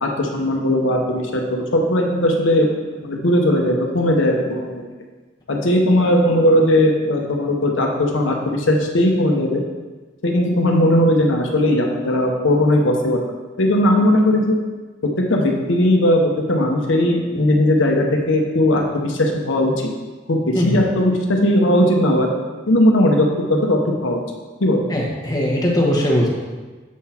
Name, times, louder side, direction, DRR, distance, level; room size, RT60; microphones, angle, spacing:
voice 1, 0.0-2.7 3.0-4.8 5.5-9.6 10.2-13.2 13.6-14.6 15.3-19.7 20.3-22.3 22.7-24.2 24.6-24.8, left 1 dB, 80° left, 1 dB, 0.8 m, -18 dB
voice 2, 24.9-26.3, left 1 dB, 20° left, -3 dB, 1.1 m, -19 dB
7.2 x 3.9 x 4.3 m, 1.3 s
head